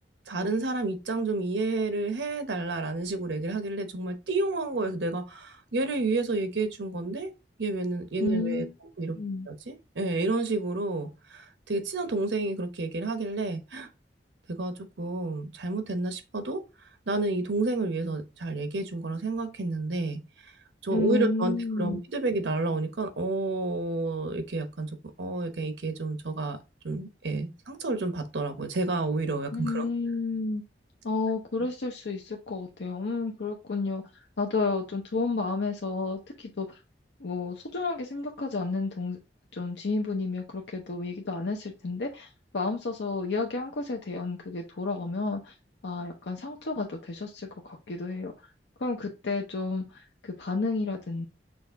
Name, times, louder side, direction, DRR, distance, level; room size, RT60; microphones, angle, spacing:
voice 1, 0.3-7.3 7.6-8.7 9.0-9.2 9.5-13.9 14.6-16.6 17.1-20.2 20.8-26.6 26.8-29.9, right 2 dB, 85° right, 0.9 m, -30 dB
voice 2, 8.2-8.7 9.1-9.5 20.9-22.0 29.5-30.6 31.0-34.0 34.4-36.7 37.2-39.2 39.5-45.5 45.8-48.3 48.8-51.3, left 3 dB, 75° left, 0.7 m, -31 dB
6.2 x 2.4 x 3.5 m
head